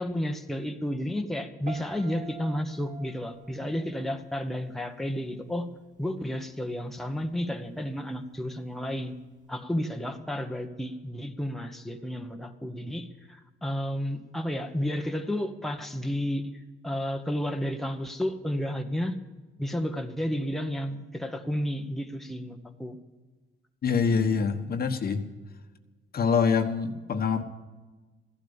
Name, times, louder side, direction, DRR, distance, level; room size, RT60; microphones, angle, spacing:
voice 1, 0.0-5.7 6.0-9.1 9.5-19.2 19.6-23.0, equal, ahead, 4 dB, 1.2 m, -32 dB
Piano, 1.7-4.8 5.0-5.5, right 3 dB, 40° right, 2.5 m, -45 dB
voice 2, 23.8-25.3 26.1-27.4, left 5 dB, 50° left, 7 dB, 1.3 m, -25 dB
15.0 x 12.0 x 7.2 m, 1.3 s
cardioid pair, 90°, 20 cm